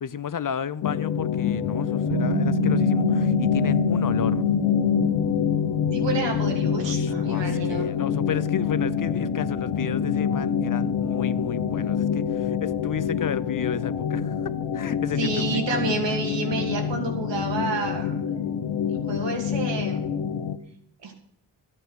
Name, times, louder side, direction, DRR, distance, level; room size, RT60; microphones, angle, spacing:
voice 1, 0.0-4.5 6.8-16.0, left 8 dB, 50° left, 0.7 m, -33 dB
sound 1, 0.8-20.6, left 7 dB, 80° left, 0.9 m, -25 dB
sound 2, 2.1-13.9, right 9 dB, 60° right, 0.7 m, -35 dB
voice 2, 5.9-7.9 15.2-18.1 18.9-20.1 21.0-21.1, right 3 dB, 85° right, 2.8 m, -29 dB
12.5 x 9.0 x 6.4 m
cardioid pair, 60°, 42 cm